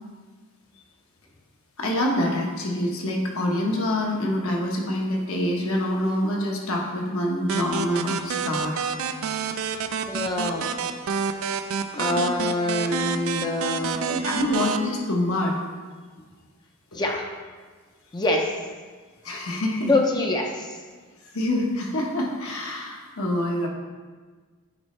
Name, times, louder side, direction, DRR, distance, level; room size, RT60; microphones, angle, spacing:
voice 1, 1.8-8.8 14.1-15.6 16.9-17.0 19.2-19.9 21.2-23.7, left 1 dB, 70° left, -1 dB, 1.1 m, -26 dB
sound 1, 7.5-14.8, right 6 dB, 65° right, 0.4 m, -29 dB
voice 2, 10.1-10.7 11.5-11.6 11.9-14.2 16.9-17.3 18.1-18.5 19.9-20.8, left 2 dB, 20° left, 1 dB, 0.5 m, -25 dB
9.5 x 4.2 x 3.2 m, 1.5 s
head